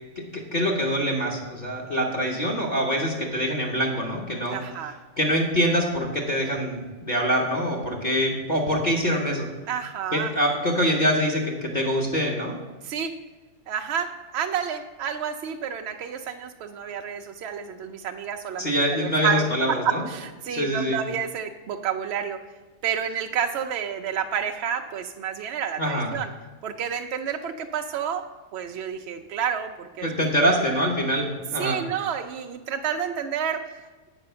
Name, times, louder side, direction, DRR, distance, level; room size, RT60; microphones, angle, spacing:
voice 1, 0.3-4.6 5.2-9.5 10.1-12.5 18.6-20.0 20.5-21.0 25.8-26.1 30.0-31.8, equal, 35° left, -2 dB, 1.2 m, -24 dB
voice 2, 4.4-4.9 9.7-10.3 12.8-13.1 13.7-14.1 14.3-22.4 22.8-26.3 26.6-28.2 28.5-30.1 30.5-30.6 31.6-33.6, right 8 dB, 65° right, 4 dB, 0.7 m, -29 dB
8.2 x 5.2 x 6.6 m, 1.3 s
omnidirectional pair, 1.5 m